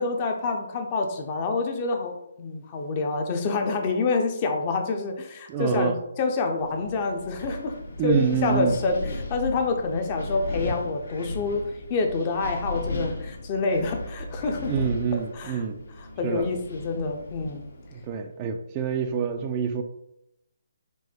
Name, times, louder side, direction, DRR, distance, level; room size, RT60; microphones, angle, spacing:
voice 1, 0.0-7.8 8.0-9.0 9.3-14.7 15.3-15.6 16.0-17.6, left 3 dB, 30° left, 4 dB, 0.6 m, -27 dB
voice 2, 5.5-6.0 8.0-8.7 14.7-15.8 16.2-16.5 17.9-19.8, right 6 dB, 25° right, 5 dB, 0.3 m, -26 dB
Wind, 6.6-18.1, left 1 dB, 65° left, 1.1 m, -36 dB
4.5 x 2.1 x 4.3 m, 0.84 s
hypercardioid pair, 150°, 0 cm